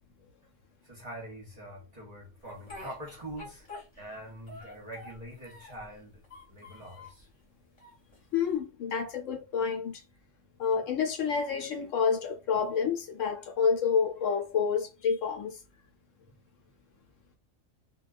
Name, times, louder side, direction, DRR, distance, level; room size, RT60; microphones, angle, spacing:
voice 1, 0.8-3.7 4.0-6.2 6.5-7.3, right 1 dB, 35° right, 0.7 m, -44 dB
Speech, 2.4-4.2 4.5-5.9 6.2-7.2 7.8-8.5, left 2 dB, 30° left, 0.9 m, -48 dB
voice 2, 8.3-10.0 10.6-15.6, left 6 dB, 65° left, 1.0 m, -29 dB
2.3 x 2.2 x 2.4 m
omnidirectional pair, 1.5 m